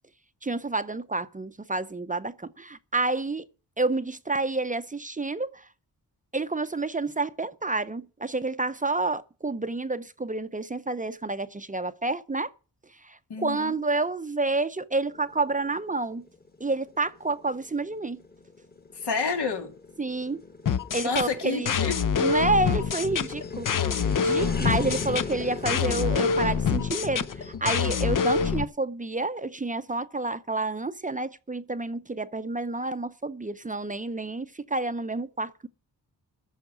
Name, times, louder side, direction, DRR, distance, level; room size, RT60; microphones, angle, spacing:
voice 1, 0.4-3.5 3.8-5.7 6.3-12.5 13.0-16.3 16.6-18.2 20.0-20.4 20.9-21.7 22.2-23.7 24.2-35.7, right 3 dB, 20° right, 0.6 m, -29 dB
voice 2, 13.3-13.7 18.9-19.7 21.0-22.4, left 4 dB, 80° left, 3.0 m, -30 dB
sound 1, 15.1-27.6, left 3 dB, 25° left, 1.5 m, -39 dB
sound 2, 20.6-28.6, left 6 dB, 50° left, 0.7 m, -26 dB
14.0 x 5.8 x 8.4 m
wide cardioid pair, 125°, 40 cm